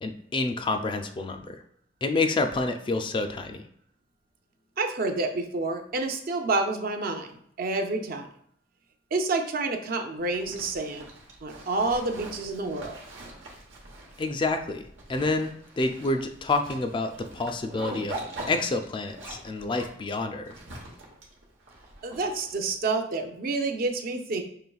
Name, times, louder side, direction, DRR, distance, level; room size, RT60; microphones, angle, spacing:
voice 1, 0.0-1.6 2.0-3.6 14.2-14.8 15.1-18.2 18.5-20.5, left 3 dB, 25° left, 6 dB, 0.3 m, -28 dB
voice 2, 4.8-8.3 9.1-11.1 11.4-13.0 22.0-24.4, right 3 dB, 50° right, 5 dB, 0.5 m, -29 dB
Zipper (clothing), 10.2-22.7, right 2 dB, 90° right, 1.0 m, -43 dB
5.6 x 3.0 x 2.3 m, 0.67 s
head